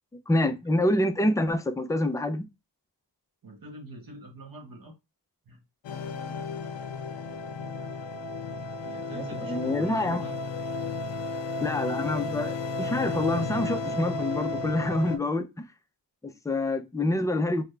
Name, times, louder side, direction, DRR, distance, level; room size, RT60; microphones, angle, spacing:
voice 1, 0.3-2.5 9.3-10.2 11.6-15.6 16.2-17.6, left 1 dB, 10° left, 0.4 m, -27 dB
voice 2, 3.4-4.9 5.5-5.6 6.3-6.4 8.8-10.4, right 2 dB, 55° right, 1.2 m, -44 dB
sound 1, 5.8-15.2, left 3 dB, 80° left, 0.6 m, -33 dB
3.5 x 2.1 x 3.3 m
wide cardioid pair, 90°, 42 cm